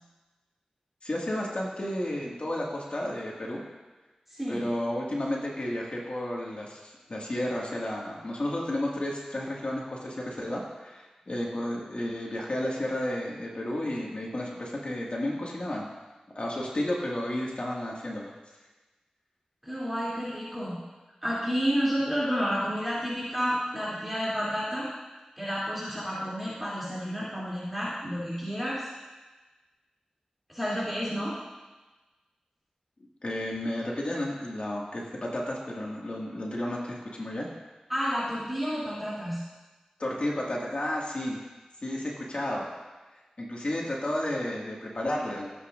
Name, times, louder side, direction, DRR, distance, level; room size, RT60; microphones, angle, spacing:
voice 1, 1.0-3.6 4.5-15.9 16.4-18.3 33.2-37.5 40.0-41.4 41.8-42.7 43.4-45.5, left 1 dB, 55° left, -3 dB, 2.0 m, -32 dB
voice 2, 4.3-4.7 19.6-20.8 21.2-24.9 25.4-28.9 30.5-31.3 37.9-39.4, equal, 5° right, -8 dB, 3.0 m, -30 dB
14.5 x 8.3 x 2.6 m, 1.2 s
cardioid pair, 40°, 2 cm